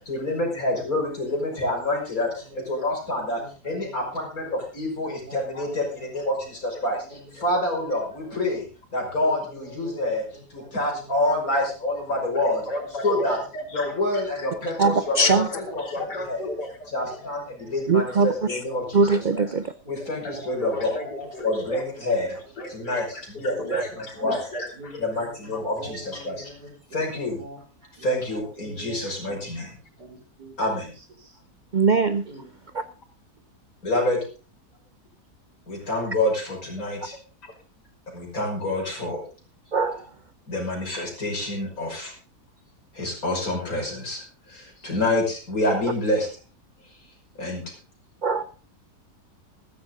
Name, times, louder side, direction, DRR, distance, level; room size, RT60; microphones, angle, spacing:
voice 1, 0.1-4.0 4.4-4.5 4.7-8.7 8.9-10.2 10.5-12.6 13.0-13.4 13.7-16.5 16.9-19.4 19.9-20.9 21.4-22.3 22.7-23.0 23.4-24.4 25.0-26.6 26.9-27.4 28.0-29.7 30.6-30.9 33.8-34.2 35.7-37.1 38.1-39.2 40.5-42.1 42.9-46.3 47.4-47.7, left 1 dB, 60° left, 0 dB, 6.3 m, -27 dB
voice 2, 3.1-3.8 5.0-5.8 9.3-9.4 9.7-9.9 10.6-11.0 14.4-14.6 17.6-17.7 18.7-18.9 20.1-20.5 21.0-21.1 24.2-24.3 24.8-25.0 25.5-27.0 27.4-27.6 28.0-28.1 28.6-29.0 29.3-29.4 30.0-30.5 31.2-31.3 32.3-32.7, right 1 dB, 75° right, 3 dB, 3.7 m, -43 dB
voice 3, 12.1-14.2 15.1-17.3 20.0-22.1 22.3-25.0 25.5-25.7, left 1 dB, 90° left, 2 dB, 3.9 m, -34 dB
voice 4, 14.8-15.5 17.9-18.6 18.9-19.6 23.7-23.8 31.7-32.2 32.7-32.8 39.7-40.0 48.2-48.4, right 3 dB, 55° right, 12 dB, 0.5 m, -21 dB
14.5 x 13.5 x 3.9 m, 0.35 s
omnidirectional pair, 1.7 m